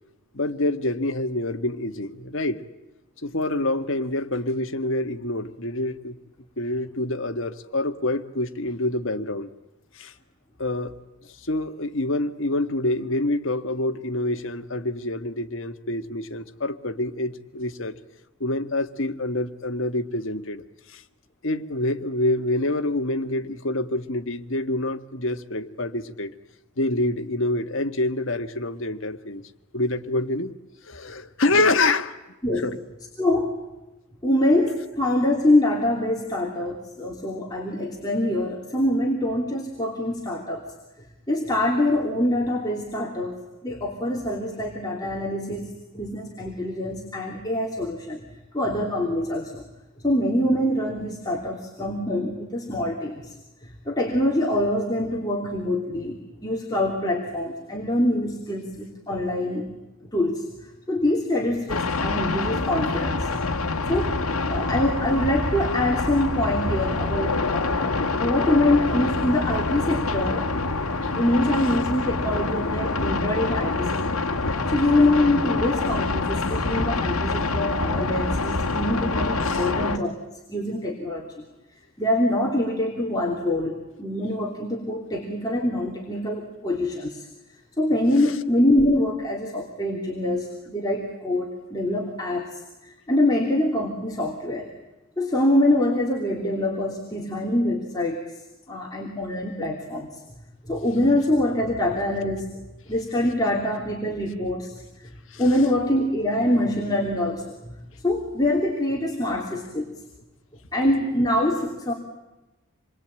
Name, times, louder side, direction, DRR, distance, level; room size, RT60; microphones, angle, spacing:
voice 1, 0.3-2.6 3.2-6.2 6.6-9.5 9.9-10.1 10.6-10.9 11.4-17.9 18.4-20.6 20.9-21.0 21.4-26.3 26.8-29.4 29.7-30.5 30.8-32.2 32.6-32.8 71.0-71.1 79.4-79.7 88.2-88.3 105.3-105.4, left 2 dB, 60° left, 8 dB, 1.6 m, -26 dB
voice 2, 33.2-33.5 34.2-40.6 41.3-48.2 48.5-49.6 50.0-53.3 53.6-59.7 60.1-60.4 60.9-63.3 63.9-64.2 64.5-67.9 68.2-70.5 70.9-74.2 74.7-80.2 80.5-81.3 82.0-87.3 87.8-94.7 95.2-98.2 98.7-100.1 100.6-102.5 102.9-104.7 105.0-105.1 105.4-107.8 108.0-109.9 110.7-111.9, left 1 dB, 15° left, -2 dB, 3.1 m, -24 dB
sound 1, 61.7-80.0, left 3 dB, 75° left, 1.7 m, -26 dB
27.5 x 22.0 x 8.9 m, 1.0 s
head